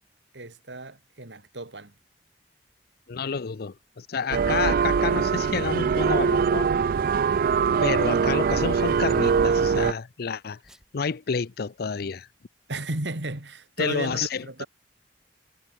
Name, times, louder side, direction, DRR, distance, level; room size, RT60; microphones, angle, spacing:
voice 1, 0.3-1.9 12.7-14.7, right 2 dB, 80° right, 2.9 m, -34 dB
voice 2, 3.1-6.7 7.8-10.6 10.9-12.3 13.8-14.6, left 5 dB, 60° left, 0.6 m, -29 dB
sound 1, 3.8-4.0 5.0-5.4 5.8-10.0 10.6-10.9, equal, 5° right, 5.3 m, -50 dB
sound 2, 4.3-9.9, right 6 dB, 55° right, 0.4 m, -22 dB
head